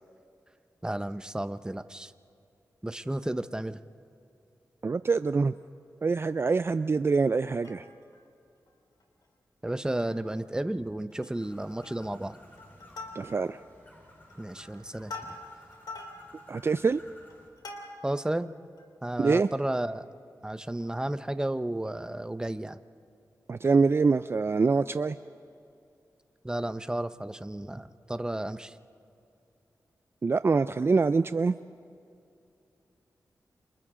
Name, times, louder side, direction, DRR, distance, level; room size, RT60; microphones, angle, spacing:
voice 1, 0.8-2.1 2.8-3.8 9.6-12.4 14.4-15.3 18.0-18.5 19.0-20.1 20.4-22.8 26.4-28.7, right 1 dB, 10° right, 11 dB, 0.7 m, -32 dB
voice 2, 4.8-5.5 6.0-7.8 13.2-13.6 16.5-17.0 19.2-19.5 23.5-25.2 30.2-31.6, right 4 dB, 35° right, 12 dB, 0.4 m, -25 dB
Plucked string instrument, 7.4-8.2 8.7-8.8 9.0-9.2 9.7-10.3 10.7-10.8 11.1-11.5 11.8-12.2 12.6-13.6 14.2-18.3 18.8-18.9, left 3 dB, 80° left, 3.1 m, -45 dB
Bird, 11.4-17.5, left 1 dB, 30° left, 6.8 m, -54 dB
30.0 x 27.0 x 3.8 m, 2.6 s
cardioid pair, 75°, 7 cm